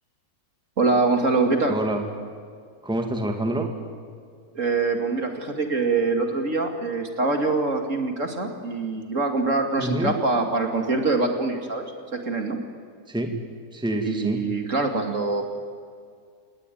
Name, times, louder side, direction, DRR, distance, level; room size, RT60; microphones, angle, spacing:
voice 1, 0.8-1.8 4.5-11.9 12.1-12.6 14.0-15.4, right 3 dB, 50° right, 4 dB, 2.7 m, -24 dB
voice 2, 1.7-2.0 2.8-3.7 9.8-10.1 13.1-13.4 13.7-14.4, right 1 dB, 5° right, 4 dB, 2.2 m, -26 dB
28.5 x 19.5 x 9.3 m, 2.1 s
omnidirectional pair, 1.7 m